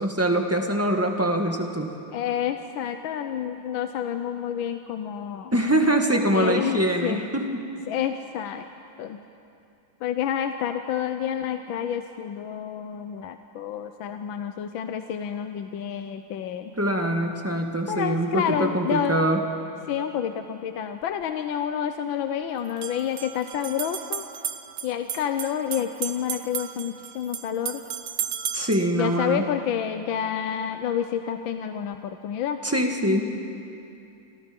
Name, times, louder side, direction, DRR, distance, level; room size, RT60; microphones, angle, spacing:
voice 1, 0.0-2.0 5.5-7.6 16.8-19.4 28.5-29.4 32.6-33.4, right 1 dB, 10° right, 2 dB, 1.6 m, -24 dB
voice 2, 2.1-5.5 6.3-7.3 7.9-8.6 9.0-9.2 10.0-16.7 17.9-19.3 19.9-24.2 24.8-27.8 28.9-32.6, left 9 dB, 75° left, 7 dB, 1.5 m, -29 dB
sound 1, 21.0-21.1 22.6-28.9, right 9 dB, 60° right, 1.2 m, -34 dB
28.5 x 25.5 x 5.3 m, 2.6 s
omnidirectional pair, 2.2 m